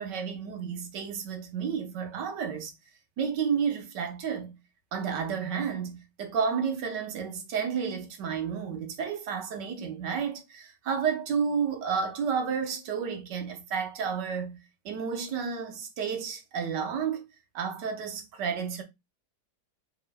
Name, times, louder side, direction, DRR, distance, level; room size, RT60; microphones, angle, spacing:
voice 1, 0.0-2.7 3.2-4.6 4.9-14.6 14.8-17.3 17.5-18.8, right 6 dB, 65° right, 1.5 m, -31 dB
5.4 x 3.7 x 2.2 m
omnidirectional pair, 2.1 m